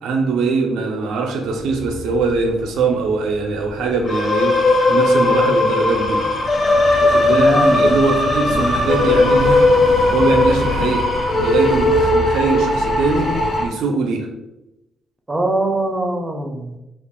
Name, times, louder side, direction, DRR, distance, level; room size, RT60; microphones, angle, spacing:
voice 1, 0.0-4.6 4.9-6.3 7.0-7.5 7.7-9.7 10.1-11.1 11.4-13.3 13.6-14.3, right 4 dB, 85° right, 3 dB, 0.4 m, -21 dB
sound 1, 1.4-13.7, left 2 dB, 75° left, 0.4 m, -30 dB
sound 2, 4.1-13.6, left 2 dB, 35° left, 0.7 m, -17 dB
voice 2, 7.3-8.1 8.5-8.8 15.3-16.8, right 1 dB, 20° right, 3 dB, 0.5 m, -22 dB
2.4 x 2.4 x 3.5 m, 0.95 s
cardioid pair, 90°, 0 cm